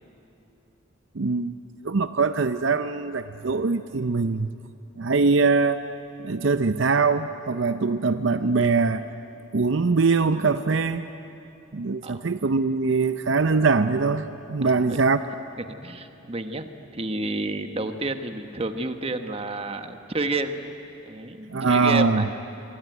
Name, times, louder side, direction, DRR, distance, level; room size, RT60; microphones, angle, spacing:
voice 1, 1.1-1.5 1.8-4.5 5.0-5.8 6.2-9.0 9.5-11.1 11.7-15.2 21.5-22.2, right 4 dB, 60° right, 11 dB, 0.6 m, -22 dB
voice 2, 14.6-15.0 15.6-20.7 21.0-22.3, right 2 dB, 30° right, 8 dB, 1.2 m, -30 dB
25.0 x 23.5 x 9.3 m, 2.8 s
head